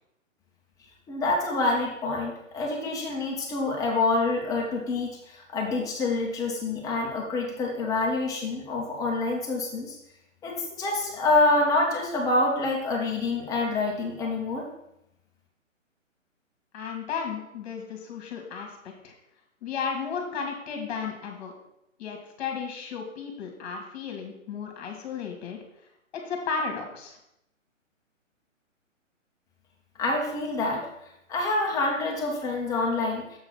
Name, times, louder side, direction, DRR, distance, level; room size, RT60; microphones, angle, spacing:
voice 1, 1.1-10.0 10.4-14.6 30.0-30.9 31.3-33.2, left 2 dB, 10° left, -1 dB, 0.7 m, -26 dB
voice 2, 16.7-19.1 19.6-21.5 22.0-25.6 26.1-27.2, left 5 dB, 35° left, 3 dB, 1.9 m, -34 dB
6.8 x 3.9 x 6.2 m, 0.83 s
figure-of-eight pair, 135°, 39 cm